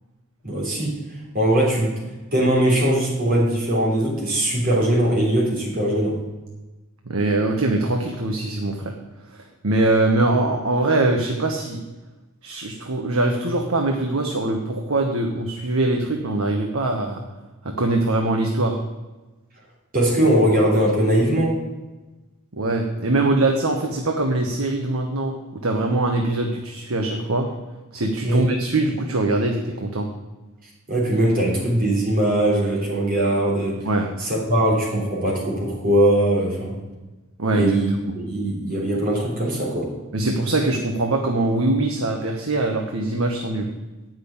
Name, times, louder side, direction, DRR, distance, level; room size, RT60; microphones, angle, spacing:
voice 1, 0.4-1.0 1.3-2.0 2.3-6.2 19.9-21.6 28.2-28.5 30.9-33.9 34.2-36.8 37.5-39.9, right 1 dB, 45° right, -3 dB, 3.6 m, -20 dB
voice 2, 7.1-8.9 9.3-11.8 12.4-17.2 17.6-18.8 22.5-27.5 27.9-30.1 33.8-34.1 37.4-37.8 40.1-43.7, right 2 dB, 85° right, 2 dB, 1.1 m, -22 dB
8.7 x 6.1 x 8.4 m, 1.1 s
head